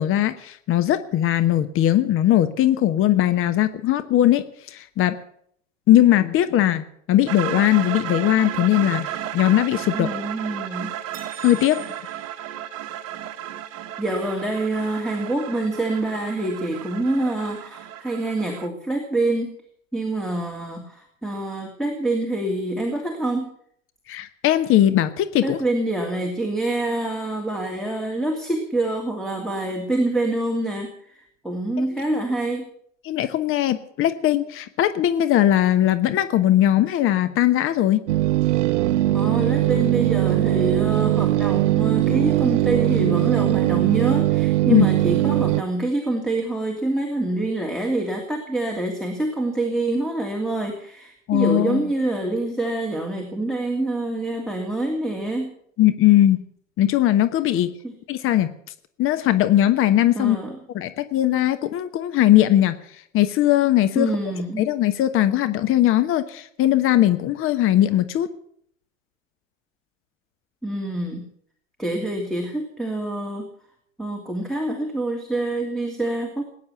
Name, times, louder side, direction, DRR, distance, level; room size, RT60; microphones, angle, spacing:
voice 1, 0.0-5.1 5.9-10.1 11.4-11.8 24.1-25.6 33.0-38.0 44.7-44.9 51.3-51.8 55.8-56.4 56.8-57.7 58.1-58.5 59.0-60.4 60.7-62.8 63.1-64.1 64.6-68.3, left 13 dB, 35° left, 12 dB, 1.2 m, -19 dB
sound 1, 7.3-18.7, right 11 dB, 40° right, 1.3 m, -33 dB
voice 2, 9.9-10.9 14.0-19.5 19.9-23.5 25.4-32.7 39.1-55.5 57.8-57.9 60.1-60.6 63.9-64.7 70.6-71.2 71.8-73.5 74.0-76.4, right 2 dB, ahead, 2 dB, 2.7 m, -26 dB
sound 2, 11.1-13.3, right 7 dB, 20° right, 5.4 m, -45 dB
sound 3, 38.1-45.6, right 15 dB, 65° right, 0.6 m, -20 dB
20.0 x 9.6 x 7.1 m, 0.66 s
figure-of-eight pair, 85°, 39 cm